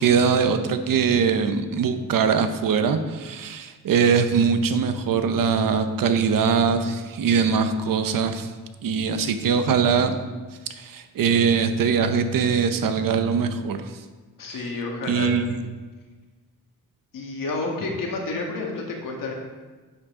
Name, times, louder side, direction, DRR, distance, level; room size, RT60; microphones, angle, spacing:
voice 1, 0.0-8.5 8.8-10.2 10.8-13.8 15.1-15.4, right 6 dB, 90° right, 9 dB, 0.8 m, -22 dB
voice 2, 14.4-15.3 17.1-19.3, left 3 dB, 80° left, 0 dB, 1.8 m, -30 dB
10.0 x 7.5 x 3.7 m, 1.3 s
wide cardioid pair, 170°, 32 cm